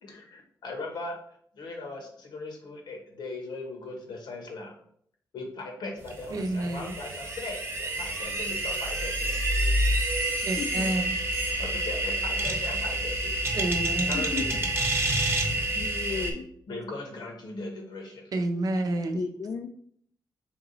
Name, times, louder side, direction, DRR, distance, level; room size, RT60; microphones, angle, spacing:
voice 1, 0.0-0.4 10.6-10.9 14.1-14.7 15.8-16.5 19.1-19.7, left 4 dB, 45° left, 3 dB, 0.4 m, -35 dB
voice 2, 0.6-1.2 1.5-4.7 5.3-9.4 11.6-13.3 14.1-14.5 16.7-18.3, left 2 dB, 80° left, 2 dB, 1.2 m, -39 dB
sound 1, 6.1-16.3, right 1 dB, 30° right, 0.9 m, -28 dB
voice 3, 6.3-6.9 10.4-11.2 13.5-14.2 18.3-19.2, right 2 dB, 55° right, 6 dB, 0.6 m, -29 dB
3.6 x 3.0 x 4.0 m, 0.64 s
cardioid pair, 105°, 7 cm